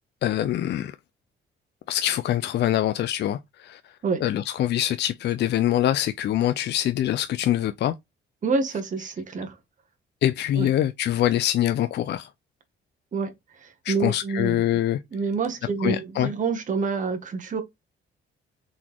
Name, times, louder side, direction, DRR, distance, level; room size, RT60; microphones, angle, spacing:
voice 1, 0.2-0.9 1.9-3.8 4.2-7.9 10.2-12.3 13.8-15.0 15.8-16.3, left 12 dB, 60° left, 0.4 m, -24 dB
voice 2, 8.4-9.6 10.5-10.7 13.1-13.3 13.6-14.8 15.1-17.6, right 4 dB, 40° right, 1.1 m, -27 dB
4.0 x 3.6 x 3.0 m
cardioid pair, 90°, 20 cm